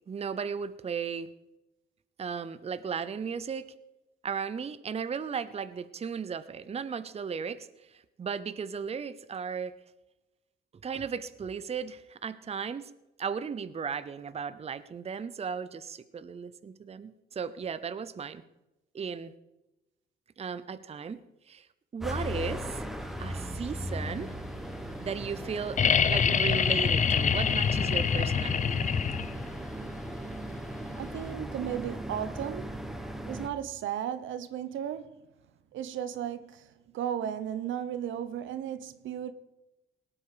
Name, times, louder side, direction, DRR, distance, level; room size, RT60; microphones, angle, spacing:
voice 1, 0.1-1.3 2.2-3.7 4.2-9.7 10.8-12.9 13.2-18.4 18.9-19.3 20.4-21.7 21.9-22.8 23.2-24.3 25.0-25.8 26.1-28.8, right 6 dB, 30° right, 0.7 m, -36 dB
sound 1, 22.0-33.5, equal, ahead, 1.4 m, -37 dB
sound 2, 25.8-29.5 31.2-31.3, left 7 dB, 40° left, 0.7 m, -25 dB
voice 2, 31.0-32.9 33.3-35.2 35.7-36.7 36.9-39.3, right 10 dB, 75° right, 0.9 m, -35 dB
18.5 x 8.7 x 5.0 m
cardioid pair, 90°, 20 cm